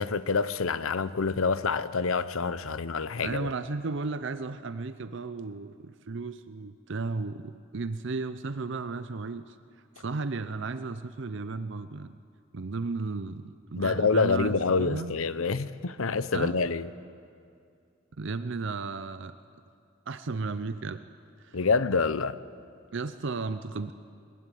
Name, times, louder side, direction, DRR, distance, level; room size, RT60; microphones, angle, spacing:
voice 1, 0.0-3.5 13.7-16.9 21.5-22.4, left 4 dB, 80° left, 0.8 m, -27 dB
voice 2, 3.2-9.6 10.0-12.2 12.5-15.2 16.3-16.6 18.2-19.3 20.1-21.0 21.4-21.6 22.9-23.9, right 3 dB, 60° right, 0.6 m, -34 dB
20.5 x 20.5 x 9.2 m
head